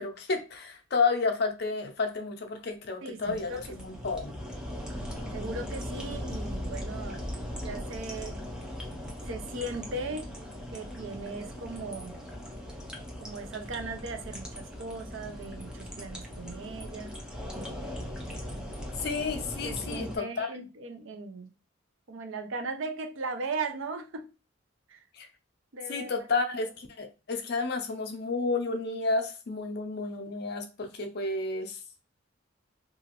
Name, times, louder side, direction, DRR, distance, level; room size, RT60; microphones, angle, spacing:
voice 1, 0.0-4.3 19.0-20.5 25.1-25.3 25.9-31.8, left 4 dB, 50° left, 0.5 m, -31 dB
voice 2, 3.0-3.6 5.3-8.4 9.2-10.3 10.7-12.2 13.2-17.2 17.5-17.8 19.6-21.5 22.1-24.3 24.9-25.1 25.7-26.3, right 3 dB, 70° right, 0.5 m, -38 dB
sound 1, 3.2-20.2, equal, 5° right, 0.5 m, -39 dB
2.8 x 2.4 x 2.9 m
head